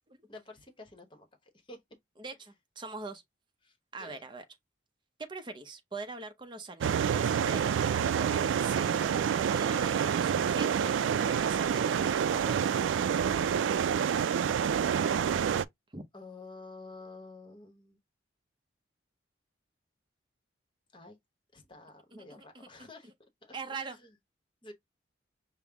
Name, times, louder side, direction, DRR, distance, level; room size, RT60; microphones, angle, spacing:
voice 1, 0.3-1.8 3.6-4.2 16.1-18.0 20.9-21.2 21.5-24.1 24.6-24.7, left 2 dB, 25° left, 0.9 m, -50 dB
voice 2, 2.2-3.2 3.9-4.4 5.2-12.9 15.9-16.0 22.1-22.9 23.5-24.0, right 3 dB, 25° right, 0.6 m, -43 dB
sound 1, 6.8-15.6, right 8 dB, 80° right, 0.3 m, -28 dB
5.4 x 2.0 x 3.4 m
head